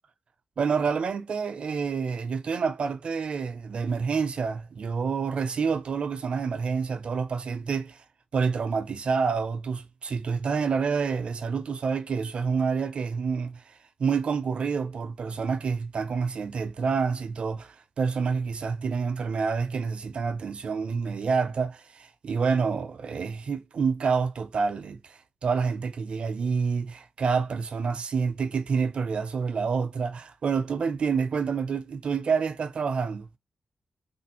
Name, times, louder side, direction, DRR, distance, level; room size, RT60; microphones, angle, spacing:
voice 1, 0.6-8.0 8.3-13.6 14.0-33.3, right 5 dB, 60° right, 0.4 m, -28 dB
3.3 x 2.3 x 2.8 m
wide cardioid pair, 115°, 2 cm